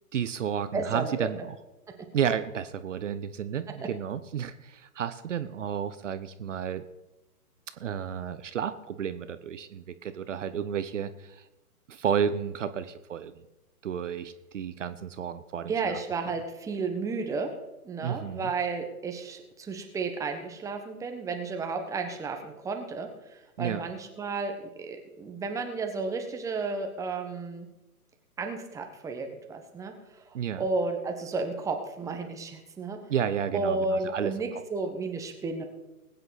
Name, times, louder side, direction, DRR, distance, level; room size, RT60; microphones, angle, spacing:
voice 1, 0.1-1.5 2.1-6.8 7.8-11.4 11.9-13.3 13.8-15.9 18.0-18.5 23.6-23.8 30.3-30.6 33.1-34.3, right 8 dB, 55° right, 12 dB, 0.9 m, -32 dB
voice 2, 0.7-1.3 15.7-17.5 17.8-24.5 24.8-27.7 28.4-33.0 33.5-35.6, right 4 dB, 5° right, 4 dB, 1.1 m, -32 dB
20.5 x 9.1 x 4.1 m, 1.0 s
figure-of-eight pair, 125°, 44 cm